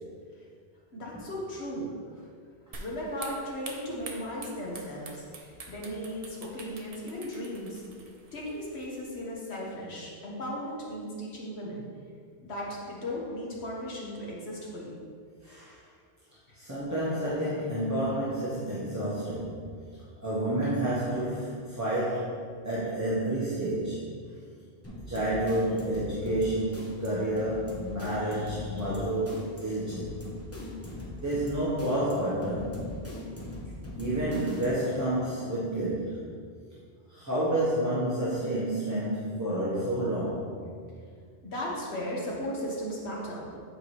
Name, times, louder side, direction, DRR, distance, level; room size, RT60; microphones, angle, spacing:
voice 1, 0.9-1.9 2.8-7.8 8.3-11.8 12.4-14.9 41.4-43.5, equal, 80° left, -4 dB, 1.6 m, -36 dB
sound 1, 2.7-9.3, right 3 dB, 40° right, 0.6 m, -47 dB
voice 2, 15.4-15.8 16.5-19.7 20.2-24.1 25.1-30.2 31.2-32.9 34.0-36.2 37.1-40.5, right 1 dB, 15° right, -9 dB, 1.0 m, -30 dB
sound 2, 24.8-34.9, left 1 dB, 15° left, 0.9 m, -41 dB
8.1 x 4.6 x 3.2 m, 2.2 s
omnidirectional pair, 1.1 m